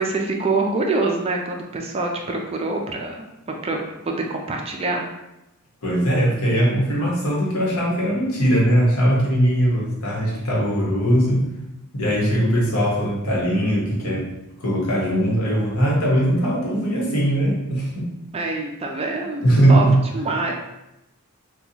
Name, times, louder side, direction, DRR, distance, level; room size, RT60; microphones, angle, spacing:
voice 1, 0.0-3.8 4.1-5.0 18.3-19.8 20.1-20.5, right 3 dB, 25° right, 1 dB, 0.3 m, -25 dB
voice 2, 5.8-11.5 11.9-14.2 14.6-18.1 19.4-19.9, right 1 dB, 70° left, -4 dB, 1.1 m, -20 dB
4.0 x 2.3 x 2.8 m, 0.91 s
head